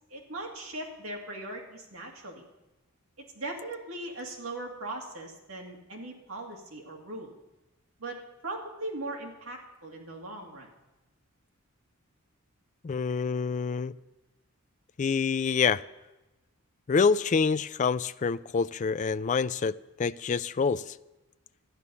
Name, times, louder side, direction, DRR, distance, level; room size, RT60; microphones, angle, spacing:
voice 1, 0.1-2.4 3.3-7.4 8.0-8.2 8.4-10.7, right 2 dB, 70° right, 1 dB, 2.6 m, -39 dB
voice 2, 12.8-13.9 15.0-15.8 16.9-21.0, left 5 dB, 35° left, 15 dB, 0.3 m, -27 dB
12.5 x 9.7 x 7.1 m, 1.0 s
head